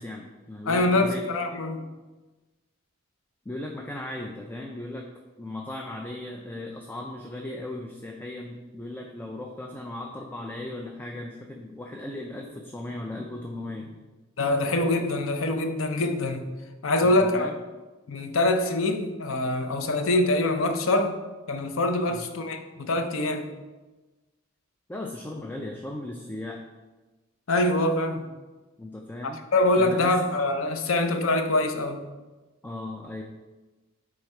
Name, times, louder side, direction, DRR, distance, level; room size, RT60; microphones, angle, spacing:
voice 1, 0.0-1.2 3.5-5.1 5.4-14.0 17.0-17.5 22.1-22.3 24.9-26.6 28.8-29.4 29.8-30.2 32.6-33.2, left 1 dB, 10° left, 1 dB, 0.4 m, -37 dB
voice 2, 0.7-1.8 14.4-16.5 16.8-17.5 18.1-21.2 21.5-23.5 27.5-28.3 29.2-32.0, left 2 dB, 80° left, 7 dB, 0.7 m, -24 dB
8.2 x 3.3 x 4.4 m, 1.2 s
head